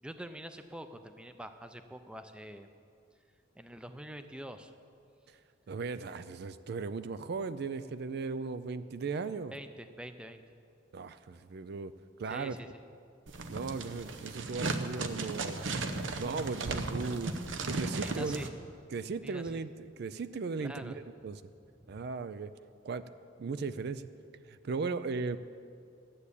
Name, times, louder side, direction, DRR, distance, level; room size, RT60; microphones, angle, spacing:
voice 1, 0.0-2.7 3.6-4.7 9.5-10.4 12.3-12.8 17.7-18.5 19.2-19.6 20.6-21.0, right 1 dB, 5° right, 9 dB, 0.5 m, -45 dB
voice 2, 5.7-9.5 10.9-11.9 12.2-12.5 13.5-15.6 16.2-17.4 17.6-18.4 18.9-21.4 21.9-22.5 22.8-23.1 23.4-24.0 24.5-25.4, right 4 dB, 55° right, 13 dB, 0.4 m, -37 dB
sound 1, 13.3-18.5, right 3 dB, 75° right, 0.8 m, -36 dB
12.5 x 8.4 x 8.3 m, 2.5 s
head